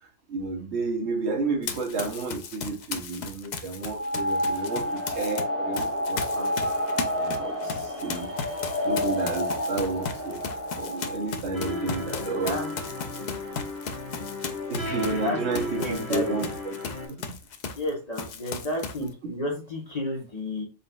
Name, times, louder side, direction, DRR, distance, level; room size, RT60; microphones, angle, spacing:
voice 1, 0.0-6.5 7.2-8.3 8.8-10.4 10.8-12.6 14.7-16.7 17.1-17.4, right 3 dB, 60° right, 1.0 m, -31 dB
Run, 1.6-5.4 5.7-17.9 18.1-19.1, left 5 dB, 80° left, 0.4 m, -36 dB
sound 1, 3.8-11.5, left 1 dB, 10° left, 1.2 m, -29 dB
sound 2, 11.5-17.1, left 2 dB, 50° left, 1.8 m, -35 dB
voice 2, 15.7-16.2 17.8-20.6, left 1 dB, 35° left, 0.9 m, -31 dB
4.0 x 4.0 x 2.2 m
omnidirectional pair, 1.4 m